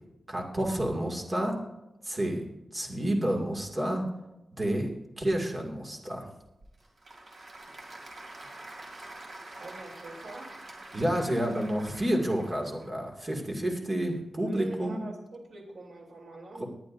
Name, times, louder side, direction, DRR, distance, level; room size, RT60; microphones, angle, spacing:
voice 1, 0.3-1.6 2.0-2.4 2.7-4.0 4.6-4.9 5.2-6.3 10.9-15.0 16.6-16.7, right 1 dB, 25° right, 1 dB, 2.2 m, -29 dB
Applause / Crowd, 6.4-12.9, right 2 dB, 50° right, 2.6 m, -46 dB
voice 2, 9.6-10.5 14.4-16.7, right 2 dB, 70° right, -1 dB, 3.3 m, -44 dB
19.5 x 10.5 x 2.6 m, 0.98 s
wide cardioid pair, 175°, 0 cm